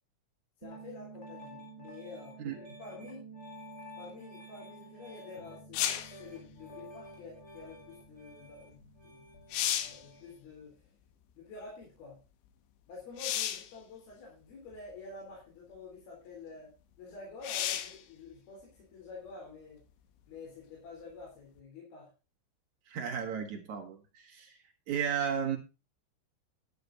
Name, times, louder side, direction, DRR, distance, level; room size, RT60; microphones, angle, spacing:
voice 1, 0.6-3.3 4.0-9.3 9.8-10.8 11.4-12.2 12.9-16.7 17.0-19.8 20.3-22.1, left 4 dB, 50° left, -2 dB, 5.2 m, -48 dB
Piano, 0.6-10.3, right 1 dB, 15° left, 5.5 m, -50 dB
sound 1, 5.7-6.2 8.8-8.9 9.3-10.1 13.2-13.7 14.7-14.8 17.4-18.0 21.6-21.7, left 11 dB, 75° left, 2.9 m, -32 dB
voice 2, 22.9-24.6 24.9-25.6, right 7 dB, 65° right, 2 dB, 1.8 m, -34 dB
11.5 x 9.7 x 4.0 m, 0.31 s
omnidirectional pair, 5.9 m